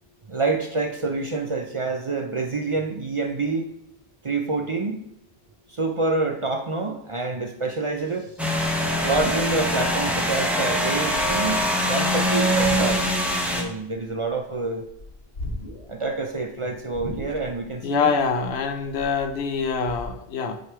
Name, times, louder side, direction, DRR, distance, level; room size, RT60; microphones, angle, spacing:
voice 1, 0.3-3.7 4.2-5.1 5.7-8.3 9.0-13.0 13.5-14.8 15.9-18.1, right 3 dB, 40° right, 4 dB, 0.5 m, -27 dB
sound 1, 8.4-13.6, equal, ahead, 0.7 m, -23 dB
sound 2, 9.1-9.9 10.2-10.6 11.1-11.7 12.5-13.2 13.5-14.5 14.8-16.0 16.4-16.5 16.9-17.7 18.1-20.1, left 2 dB, 70° left, 1.4 m, -36 dB
voice 2, 17.8-20.6, left 5 dB, 90° left, 7 dB, 1.0 m, -25 dB
9.0 x 3.3 x 4.6 m, 0.76 s
omnidirectional pair, 1.1 m